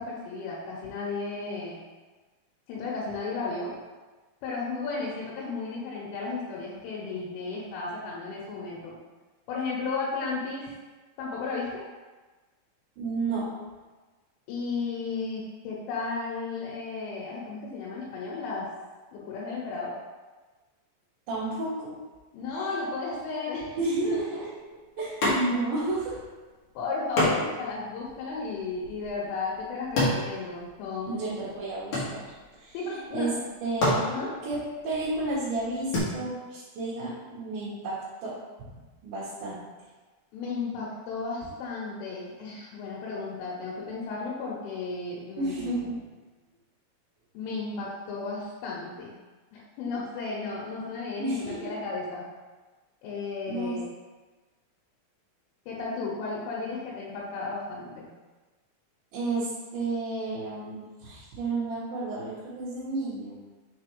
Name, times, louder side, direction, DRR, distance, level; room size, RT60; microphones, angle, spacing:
voice 1, 0.0-1.8 2.7-3.7 4.4-9.0 9.5-10.7 11.2-11.8 14.5-18.7 19.1-19.9 22.3-23.8 24.0-24.1 26.8-31.3 32.7-33.4 34.0-34.3 40.3-45.8 47.4-49.2 49.5-52.3 53.0-53.9 55.7-58.1, left 4 dB, 85° left, -5 dB, 3.5 m, -34 dB
voice 2, 13.0-13.5 21.3-22.0 22.5-22.6 23.8-24.4 24.7-26.2 31.0-33.3 33.6-34.1 34.4-34.6 34.8-38.0 38.2-38.3 39.0-39.6 45.4-46.0 51.2-51.6 53.5-53.8 59.1-63.4, right 2 dB, 65° right, -12 dB, 2.6 m, -31 dB
sound 1, 25.2-25.8 26.1-26.2 27.2-31.1 31.4-32.6 33.3-33.4 33.7-36.0, left 1 dB, 50° left, 2.4 m, -29 dB
7.0 x 4.2 x 3.3 m, 1.3 s
omnidirectional pair, 5.6 m